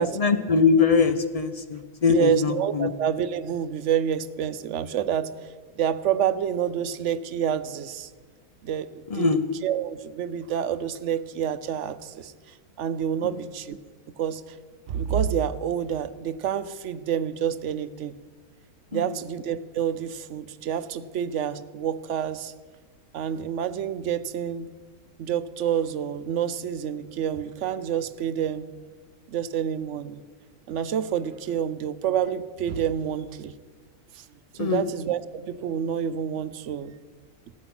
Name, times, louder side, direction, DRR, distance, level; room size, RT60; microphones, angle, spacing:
voice 1, 0.2-2.9 9.1-9.4 18.9-19.0 34.6-34.8, left 5 dB, 50° left, 11 dB, 0.4 m, -22 dB
voice 2, 2.1-5.3 5.8-8.1 8.6-13.8 14.2-14.6 14.9-18.2 18.9-22.5 23.1-24.7 25.2-28.7 29.3-30.2 30.7-33.5 34.1-34.3 34.5-36.9, right 9 dB, 65° right, 14 dB, 0.8 m, -28 dB
15.5 x 12.0 x 6.0 m, 1.4 s
omnidirectional pair, 1.6 m